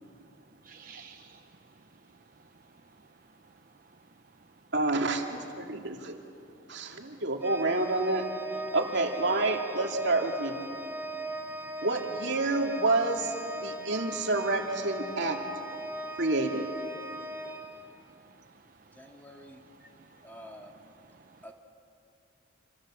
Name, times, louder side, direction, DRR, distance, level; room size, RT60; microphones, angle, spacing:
voice 1, 0.6-1.4 11.4-11.5 13.6-13.9 15.8-16.2 17.1-18.6 18.9-19.0 19.6-20.3 21.3-21.4, right 5 dB, 45° right, 6 dB, 0.8 m, -55 dB
voice 2, 4.7-6.2 6.7-8.2 8.7-10.6 11.8-15.4 16.2-16.7, right 2 dB, 60° right, 2 dB, 2.5 m, -28 dB
Organ, 7.4-18.3, right 1 dB, 10° right, 1.3 m, -39 dB
voice 3, 18.9-19.6 20.2-20.7 21.4-21.5, equal, 10° left, 1 dB, 2.3 m, -48 dB
27.5 x 26.5 x 7.6 m, 2.5 s
head